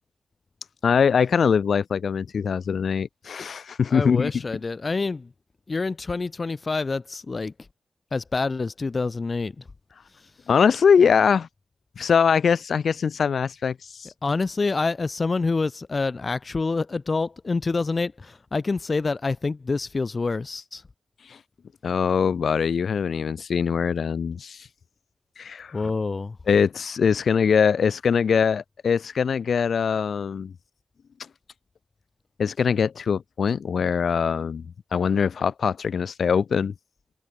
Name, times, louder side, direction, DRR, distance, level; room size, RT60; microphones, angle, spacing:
voice 1, 0.8-4.3 10.5-11.5 12.0-14.1 21.3-21.4 21.8-24.7 25.4-25.8 26.5-30.5 32.4-34.6 34.9-36.7, left 6 dB, 75° left, 4.8 m, -22 dB
voice 2, 3.9-5.3 5.7-7.5 8.1-9.6 14.2-20.8 25.7-26.4, left 3 dB, 40° left, 4.3 m, -27 dB
wide cardioid pair, 110°, 0 cm